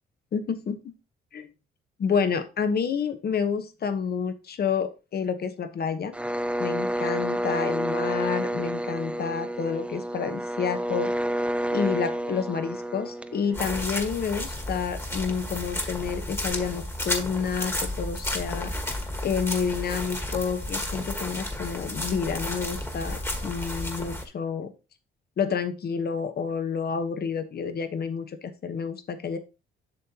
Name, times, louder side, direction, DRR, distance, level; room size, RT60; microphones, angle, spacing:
voice 1, 0.3-0.9 1.3-1.5 2.0-6.1 6.6-11.1 11.7-18.7 19.2-24.7 25.4-29.4, left 6 dB, 50° left, 10 dB, 1.1 m, -29 dB
sound 1, 6.1-13.9, right 1 dB, 5° right, 0.5 m, -29 dB
sound 2, 13.5-24.2, left 1 dB, 10° left, 1.6 m, -32 dB
7.6 x 6.4 x 2.9 m, 0.30 s
cardioid pair, 90°, 20 cm